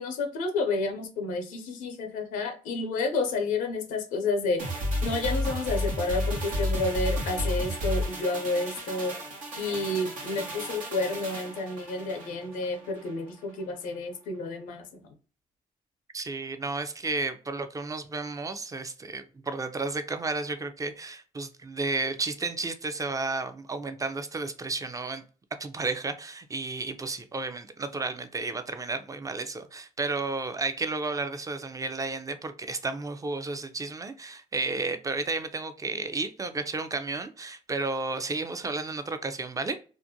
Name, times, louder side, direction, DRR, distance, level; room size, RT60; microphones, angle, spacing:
voice 1, 0.0-4.6 5.0-9.2 9.6-15.1, left 3 dB, 85° left, 0.6 m, -30 dB
sound 1, 4.6-13.2 13.5-13.6, equal, 75° right, 0.9 m, -32 dB
voice 2, 16.1-25.2 25.6-39.8, right 3 dB, 25° right, 0.4 m, -32 dB
2.4 x 2.1 x 2.7 m
supercardioid pair, 60°, 14 cm